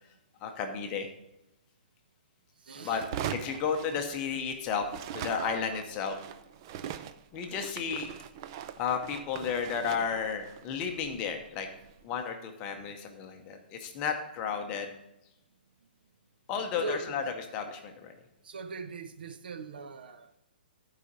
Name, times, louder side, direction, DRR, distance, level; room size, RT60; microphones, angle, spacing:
voice 1, 0.4-1.1 2.8-3.0 3.3-4.8 5.1-6.2 7.3-8.1 8.8-11.7 12.0-14.9 16.5-17.2 17.5-18.1, left 6 dB, 20° left, 0.7 m, -33 dB
voice 2, 2.6-3.1 12.2-12.3 16.8-17.3 18.4-20.3, right 4 dB, 65° right, 0.8 m, -40 dB
sound 1, 2.9-4.5 4.8-12.0, right 9 dB, 25° right, 0.3 m, -41 dB
11.5 x 4.9 x 5.4 m
hypercardioid pair, 175°, 5 cm